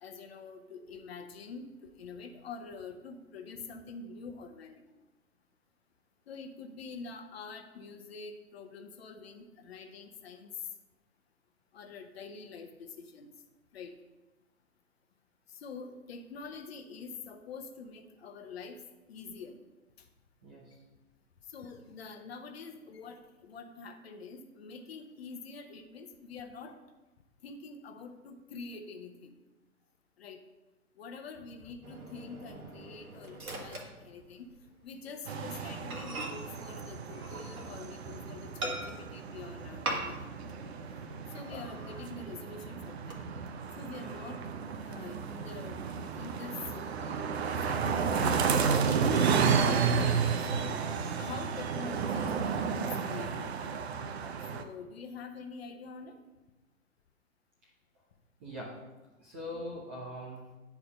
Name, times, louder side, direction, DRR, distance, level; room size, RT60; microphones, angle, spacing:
voice 1, 0.0-4.8 6.3-10.7 11.7-13.3 13.7-13.9 15.5-19.6 21.5-26.7 27.4-29.3 30.2-30.4 31.0-34.5 34.8-43.2 43.8-44.5 44.8-45.8 46.2-46.8 47.6-49.1 50.5-50.8 51.2-53.7 54.5-56.2, left 4 dB, 45° left, 6 dB, 1.0 m, -46 dB
voice 2, 20.4-20.8 43.9-44.1 58.4-58.9 59.2-60.6, equal, 10° right, -4 dB, 0.4 m, -42 dB
Microwave oven, 31.8-34.7 35.0-35.2 35.6-35.7 35.9-38.0 38.6-39.2 39.8-40.4 40.7-40.8 41.3-42.0 42.5-43.1, right 2 dB, 75° right, 1.7 m, -41 dB
sound 1, 35.3-54.6, right 6 dB, 45° right, 0.7 m, -32 dB
9.5 x 4.8 x 5.2 m, 1.1 s
figure-of-eight pair, 120°, 43 cm